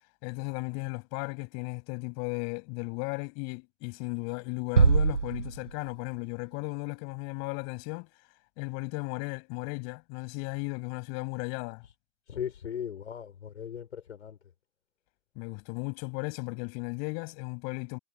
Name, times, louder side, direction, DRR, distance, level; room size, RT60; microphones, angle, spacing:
voice 1, 0.2-8.1 8.6-11.8 15.4-18.0, left 36 dB, 45° left, 6.9 m, -35 dB
sound 1, 4.8-6.3, right 5 dB, 90° right, 1.2 m, -24 dB
voice 2, 12.3-14.4, left 9 dB, 75° left, 6.0 m, -38 dB
figure-of-eight pair, 95°, 36 cm